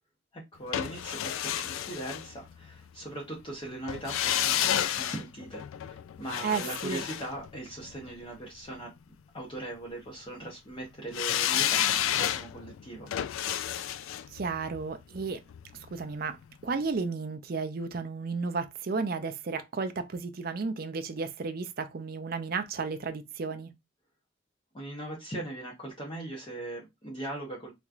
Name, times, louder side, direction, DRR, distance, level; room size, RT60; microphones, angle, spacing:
voice 1, 0.3-8.9 9.3-13.3 24.7-27.7, right 1 dB, 25° left, 0.8 m, -40 dB
sound 1, 0.7-2.8 3.9-8.1 11.1-16.1 16.4-16.5, left 11 dB, 80° left, 0.3 m, -31 dB
voice 2, 6.4-7.0 14.3-15.4 15.9-16.4 16.6-23.7, right 4 dB, 50° right, 0.4 m, -33 dB
3.4 x 3.0 x 2.4 m
head